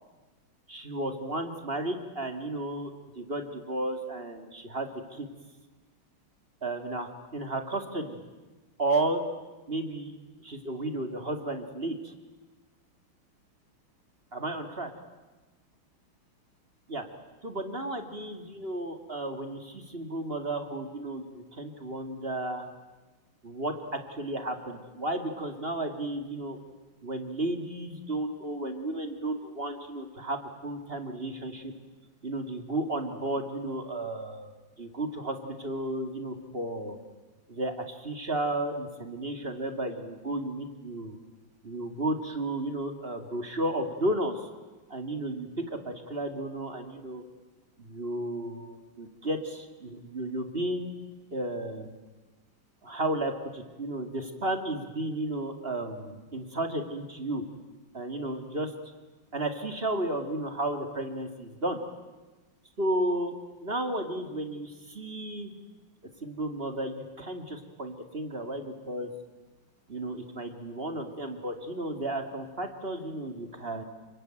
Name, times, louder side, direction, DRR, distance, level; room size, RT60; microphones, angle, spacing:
voice 1, 0.7-2.9 3.2-5.3 6.6-8.2 8.8-9.2 9.7-10.1 10.4-12.1 14.3-14.9 16.9-17.0 17.4-22.7 23.4-26.6 27.0-31.7 32.2-34.5 34.8-37.0 37.5-41.2 41.6-44.5 44.9-47.2 47.8-50.9 51.3-51.9 52.8-57.4 57.9-58.7 59.3-61.8 62.8-63.3 63.6-65.5 66.2-69.1 69.9-73.8, right 1 dB, 30° right, 6 dB, 2.5 m, -33 dB
29.5 x 22.0 x 9.2 m, 1.2 s
omnidirectional pair, 2.2 m